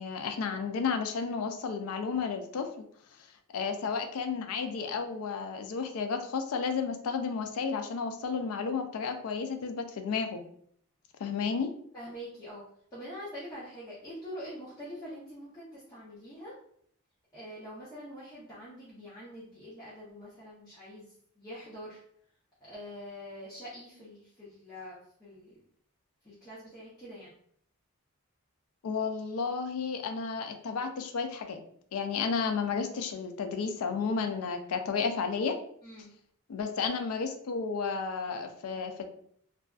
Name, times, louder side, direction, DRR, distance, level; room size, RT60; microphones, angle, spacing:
voice 1, 0.0-2.7 3.5-10.4 11.2-11.7 28.8-31.6 31.9-35.6 36.5-39.1, left 5 dB, 75° left, 6 dB, 0.4 m, -32 dB
voice 2, 11.9-12.6 12.9-16.5 17.3-22.0 22.6-25.6 26.2-27.3 35.8-36.1, equal, 15° left, -11 dB, 0.7 m, -45 dB
2.5 x 2.3 x 2.3 m, 0.65 s
head